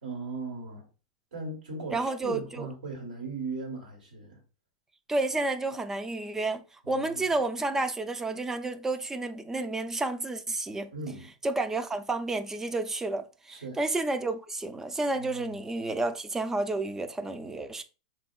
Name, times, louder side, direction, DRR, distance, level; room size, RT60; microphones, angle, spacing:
voice 1, 0.0-0.9 1.3-4.4 6.8-7.2 10.9-11.3 13.5-13.8 15.2-15.6, right 3 dB, 85° right, 1.3 m, -38 dB
voice 2, 1.9-2.7 5.1-10.9 11.4-17.8, right 2 dB, 10° right, 0.3 m, -31 dB
3.4 x 2.3 x 2.2 m
hypercardioid pair, 115°, 4 cm